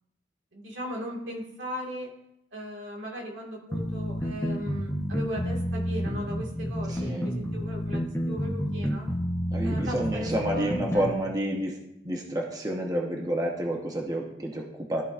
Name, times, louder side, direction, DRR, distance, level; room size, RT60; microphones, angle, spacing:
voice 1, 0.5-2.1 2.5-9.1 9.6-11.1, equal, 80° right, -2 dB, 1.8 m, -37 dB
sound 1, 3.7-11.1, equal, 15° left, 0.9 m, -30 dB
voice 2, 6.9-7.3 9.5-11.8 12.0-15.0, right 1 dB, 20° right, -1 dB, 0.8 m, -29 dB
13.5 x 4.7 x 2.5 m, 0.82 s
head